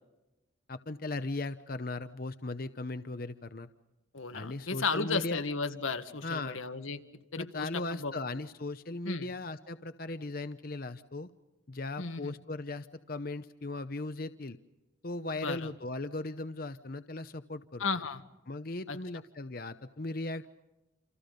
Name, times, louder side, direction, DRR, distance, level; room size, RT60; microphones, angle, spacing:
voice 1, 0.7-3.7 4.3-5.4 6.2-6.6 7.4-11.3 11.7-14.6 15.0-17.8 18.5-20.5, left 2 dB, 45° left, 10 dB, 0.8 m, -38 dB
voice 2, 4.1-7.0 7.3-8.1 9.1-9.3 12.0-12.3 15.4-15.7 17.8-18.2 18.9-19.0, left 4 dB, 90° left, 8 dB, 1.8 m, -34 dB
28.5 x 28.0 x 5.3 m, 1.0 s
head